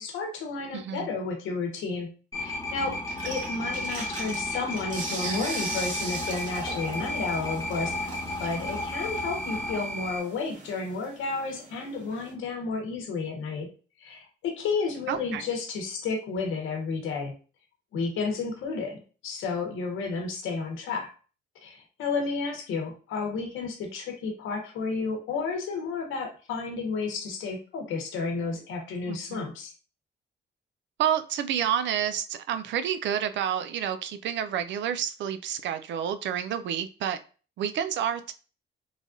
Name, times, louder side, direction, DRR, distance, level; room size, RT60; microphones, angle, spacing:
voice 1, 0.0-8.0 8.4-13.7 14.0-17.4 17.9-21.1 21.6-29.7, left 4 dB, 85° left, 3 dB, 0.9 m, -32 dB
voice 2, 0.7-1.1 15.1-15.5 29.1-29.4 31.0-37.2 37.6-38.3, right 9 dB, 65° right, 10 dB, 0.4 m, -29 dB
sound 1, 2.3-10.2, left 1 dB, 15° left, 1.0 m, -33 dB
sound 2, 3.1-12.3, right 3 dB, 40° right, 1.2 m, -39 dB
3.2 x 2.3 x 2.5 m, 0.36 s
cardioid pair, 90°, 20 cm